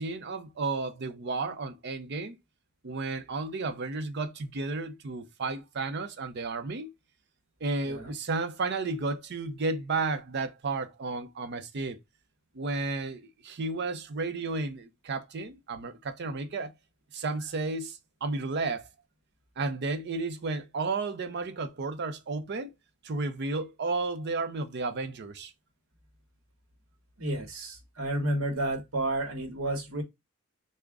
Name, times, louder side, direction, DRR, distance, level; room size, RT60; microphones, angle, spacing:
voice 1, 0.0-2.4 2.8-6.9 7.6-12.0 12.5-16.7 17.1-18.9 19.6-22.7 23.0-25.5, right 3 dB, 55° right, 0.5 m, -33 dB
voice 2, 27.2-30.0, right 1 dB, 85° right, 0.9 m, -31 dB
3.5 x 2.1 x 3.4 m
head